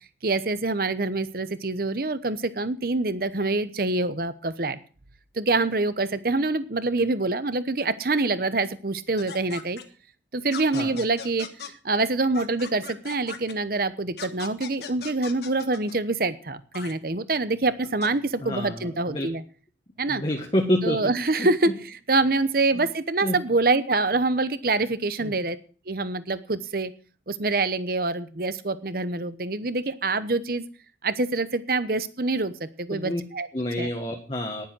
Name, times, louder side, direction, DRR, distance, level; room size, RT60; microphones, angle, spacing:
voice 1, 0.2-4.8 5.3-9.8 10.3-11.5 11.8-19.4 20.0-20.2 20.8-25.6 25.9-26.9 27.3-30.6 31.0-33.5 33.8-33.9, right 3 dB, 50° right, 14 dB, 0.9 m, -25 dB
sound 1, 9.2-9.8 10.5-11.7 12.3-13.5 14.2-16.0 16.7-16.9 17.8-18.1, left 5 dB, 65° left, 1.4 m, -38 dB
voice 2, 18.4-19.3 20.1-21.1 21.4-21.5 22.7-22.8 23.2-23.4 25.2-25.3 32.9-33.2 33.5-34.7, left 1 dB, 30° left, 1 dB, 1.5 m, -28 dB
10.5 x 10.5 x 6.1 m, 0.39 s
head